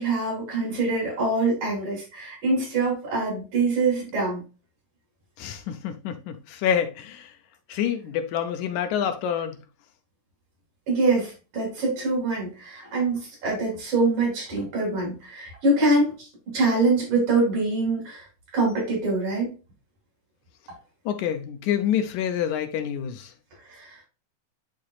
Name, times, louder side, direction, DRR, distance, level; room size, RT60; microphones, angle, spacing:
voice 1, 0.0-4.4 10.9-18.3 18.5-19.5 23.6-24.0, right 2 dB, 80° right, 5.1 m, -24 dB
voice 2, 5.4-7.3 7.7-9.6 21.1-23.3, left 9 dB, 80° left, 2.2 m, -27 dB
10.5 x 3.8 x 2.4 m
omnidirectional pair, 3.3 m